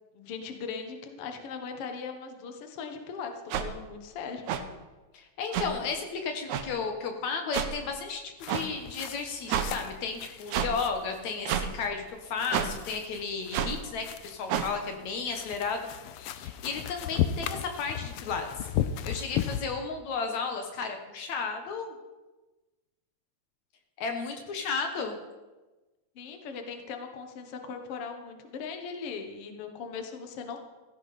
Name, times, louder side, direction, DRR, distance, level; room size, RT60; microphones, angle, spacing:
voice 1, 0.1-4.5 26.2-30.6, left 5 dB, 55° left, 5 dB, 2.2 m, -39 dB
sound 1, 3.5-3.7 4.5-4.6 5.5-5.7 6.5-6.6 7.5-7.7 8.5-8.7 9.5-9.7 10.5-10.7 11.5-11.7 12.5-12.7 13.5-13.7 14.5-14.7, right 9 dB, 80° right, 2.3 m, -28 dB
voice 2, 5.1-15.9 16.2-18.7 19.0-21.9 24.0-25.2, left 5 dB, 70° left, 5 dB, 2.5 m, -33 dB
sound 2, 8.4-19.6, left 10 dB, 90° left, 1.2 m, -36 dB
15.5 x 15.5 x 4.2 m, 1.2 s
omnidirectional pair, 3.4 m